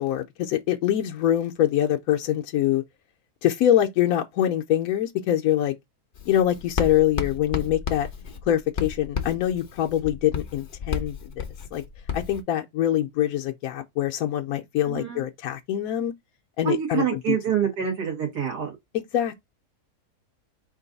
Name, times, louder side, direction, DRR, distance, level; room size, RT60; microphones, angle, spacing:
voice 1, 0.0-2.8 3.4-5.7 6.3-8.1 8.5-11.4 11.7-11.8 12.1-16.1 16.6-17.4 19.1-19.4, left 11 dB, 70° left, 1.0 m, -24 dB
Writing, 6.1-12.4, left 7 dB, 50° left, 0.5 m, -33 dB
voice 2, 14.8-15.2 16.6-18.8, right 8 dB, 80° right, 2.4 m, -26 dB
4.6 x 2.6 x 3.9 m
omnidirectional pair, 1.7 m